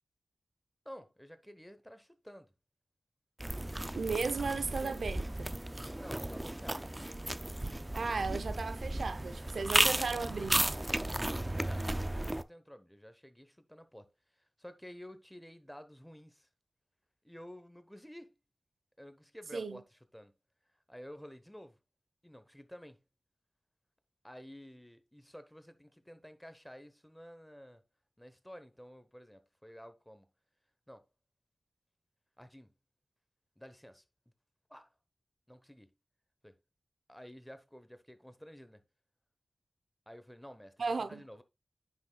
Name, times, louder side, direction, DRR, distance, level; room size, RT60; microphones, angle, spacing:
voice 1, 0.8-2.5 4.2-5.0 6.0-6.9 9.5-9.7 10.1-10.2 10.9-16.5 17.2-18.3 19.0-20.3 20.9-21.8 22.2-23.0 24.2-27.8 28.2-30.3 30.9-31.0 32.4-32.7 33.6-34.0 34.7-34.9 35.5-35.9 36.4-36.6 37.1-38.8 40.1-41.4, equal, 5° left, 0.9 m, -52 dB
sound 1, 3.4-12.4, right 1 dB, 20° right, 0.4 m, -34 dB
voice 2, 3.9-5.5 7.9-10.6 19.5-19.8 40.8-41.2, right 4 dB, 85° right, 0.6 m, -35 dB
9.5 x 6.2 x 2.3 m
wide cardioid pair, 65°, 0 cm